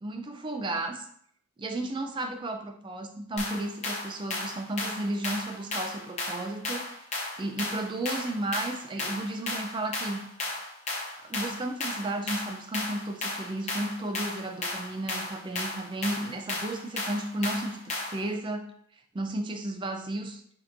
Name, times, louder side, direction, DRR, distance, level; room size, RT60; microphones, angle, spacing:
voice 1, 0.0-1.1 1.6-7.1 7.4-10.3 11.2-18.7 19.1-20.4, right 1 dB, 20° right, 5 dB, 0.3 m, -33 dB
sound 1, 3.4-18.3, left 2 dB, 30° left, 0.7 m, -34 dB
6.2 x 2.9 x 2.5 m, 0.65 s
head